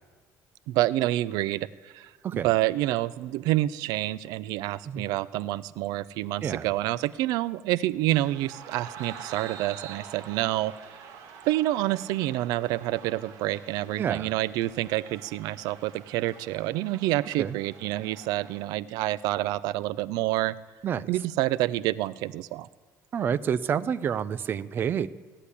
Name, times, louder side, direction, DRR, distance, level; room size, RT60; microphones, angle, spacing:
voice 1, 0.7-11.0 11.5-20.6 21.1-22.7, right 16 dB, 90° right, 19 dB, 0.4 m, -28 dB
sound 1, 8.1-18.6, right 7 dB, 65° right, 1.7 m, -46 dB
voice 2, 14.0-14.3 17.4-17.6 20.8-21.1 23.1-25.1, right 8 dB, 35° right, 16 dB, 0.5 m, -28 dB
16.5 x 10.0 x 8.4 m, 1.5 s
cardioid pair, 165°, 6 cm